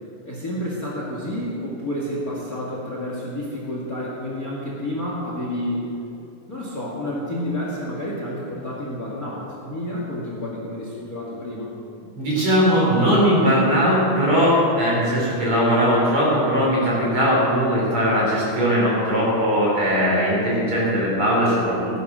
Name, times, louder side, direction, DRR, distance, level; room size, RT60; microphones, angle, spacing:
voice 1, 0.2-5.9 6.5-11.7, left 1 dB, 35° left, -4 dB, 2.1 m, -30 dB
voice 2, 12.1-22.0, equal, 45° right, -5 dB, 5.3 m, -19 dB
15.5 x 11.0 x 6.2 m, 2.7 s
omnidirectional pair, 3.5 m